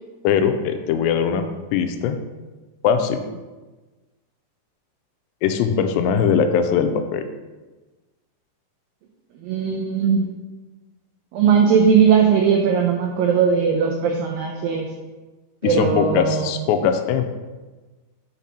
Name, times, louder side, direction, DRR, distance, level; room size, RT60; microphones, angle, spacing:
voice 1, 0.2-1.5 1.7-2.2 2.8-3.2 5.4-7.2 15.6-17.3, left 7 dB, 85° left, 7 dB, 2.8 m, -20 dB
voice 2, 9.4-10.3 11.3-14.9 15.6-16.6, right 6 dB, 85° right, 2 dB, 2.0 m, -18 dB
9.8 x 3.6 x 5.8 m, 1.2 s
omnidirectional pair, 5.0 m